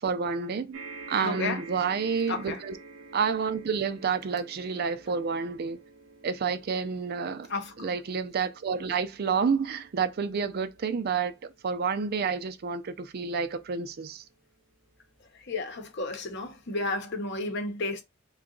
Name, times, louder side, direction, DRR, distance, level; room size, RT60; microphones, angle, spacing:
voice 1, 0.0-2.8 3.1-5.8 6.2-7.5 7.8-11.3 11.6-14.2, right 5 dB, 50° right, 0.4 m, -29 dB
sound 1, 0.7-15.3 16.0-16.1 16.4-16.5, right 4 dB, 80° right, 0.9 m, -50 dB
voice 2, 1.2-1.6 2.3-2.6 7.5-7.9 15.3-18.0, left 3 dB, 60° left, 0.8 m, -32 dB
3.8 x 2.3 x 3.8 m
head